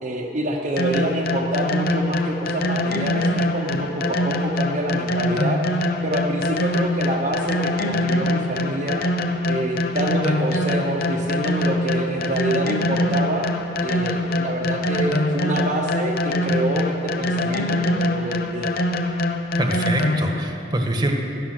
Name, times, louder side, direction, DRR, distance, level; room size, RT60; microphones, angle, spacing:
voice 1, 0.0-9.0 9.5-13.5 13.8-18.7, right 1 dB, 40° right, -2 dB, 1.0 m, -27 dB
sound 1, 0.8-20.4, left 1 dB, 55° left, 0.8 m, -23 dB
voice 2, 19.6-21.1, right 1 dB, 25° right, 2 dB, 1.4 m, -24 dB
16.5 x 11.0 x 6.7 m, 2.9 s
head